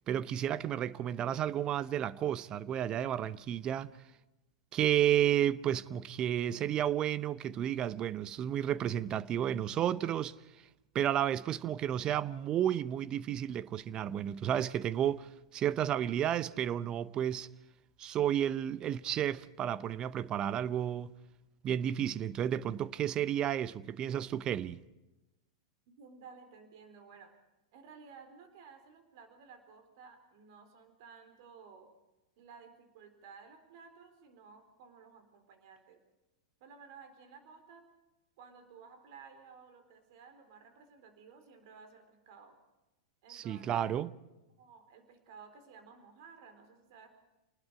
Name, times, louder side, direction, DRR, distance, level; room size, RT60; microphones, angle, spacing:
voice 1, 0.1-3.9 4.7-10.3 10.9-17.5 18.0-21.1 21.6-24.8 43.3-44.1, right 10 dB, 30° right, 0.8 m, -32 dB
voice 2, 25.9-27.3 27.7-31.9 32.4-36.0 36.6-37.8 38.4-42.6 43.2-44.0 44.6-47.1, right 5 dB, 55° right, 4.2 m, -55 dB
28.0 x 20.0 x 4.9 m
figure-of-eight pair, 95°, 3 cm